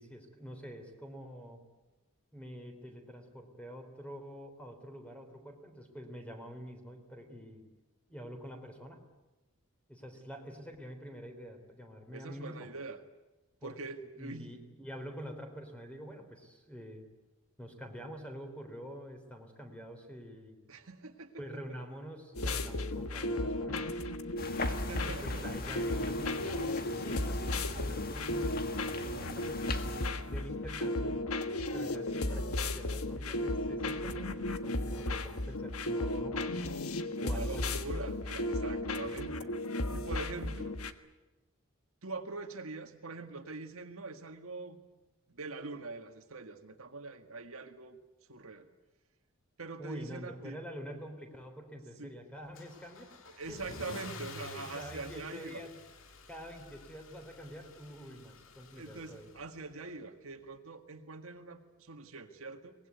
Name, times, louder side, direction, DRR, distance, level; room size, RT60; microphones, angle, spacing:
voice 1, 0.0-1.6 2.3-7.6 8.1-9.0 9.9-12.7 13.6-13.8 14.2-17.1 17.6-20.6 21.4-24.0 25.0-28.6 29.0-31.2 31.7-36.6 37.2-37.7 49.8-53.1 53.5-53.8 54.5-55.8 56.3-59.3, equal, 5° left, 5 dB, 3.6 m, -46 dB
voice 2, 12.1-13.0 13.6-14.6 20.7-21.4 24.7-25.4 37.2-39.5 39.9-40.7 42.0-44.8 45.3-48.0 48.3-48.7 49.6-50.6 52.0-52.1 53.4-55.6 58.8-62.8, right 3 dB, 75° right, 6 dB, 1.8 m, -44 dB
sound 1, 22.3-40.9, left 1 dB, 80° left, 1.4 m, -35 dB
sound 2, 24.4-30.1, left 3 dB, 45° left, 1.9 m, -41 dB
Car / Engine starting / Accelerating revving vroom, 52.6-59.7, left 3 dB, 65° left, 2.3 m, -50 dB
24.0 x 19.5 x 9.4 m, 1.1 s
head